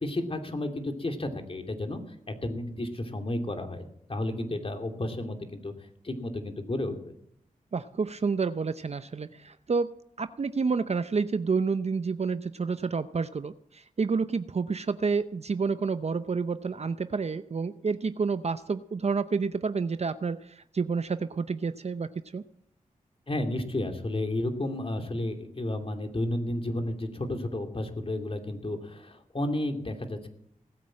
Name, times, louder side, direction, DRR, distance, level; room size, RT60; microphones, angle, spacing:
voice 1, 0.0-2.0 2.4-5.7 6.0-7.1 23.3-30.3, left 1 dB, 40° left, 4 dB, 2.8 m, -32 dB
voice 2, 7.7-9.9 10.2-22.4, right 5 dB, 50° right, 12 dB, 0.6 m, -29 dB
19.0 x 8.7 x 7.6 m, 0.72 s
cardioid pair, 55°, 14 cm